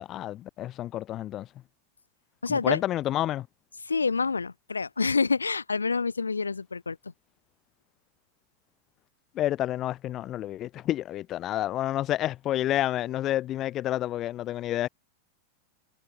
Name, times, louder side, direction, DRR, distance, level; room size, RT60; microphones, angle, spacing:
voice 1, 0.0-1.5 2.5-3.5 9.3-14.9, left 13 dB, 30° left, 3.2 m, -29 dB
voice 2, 2.4-2.8 3.8-7.0, left 4 dB, 75° left, 3.1 m, -27 dB
figure-of-eight pair, 90°, 0 cm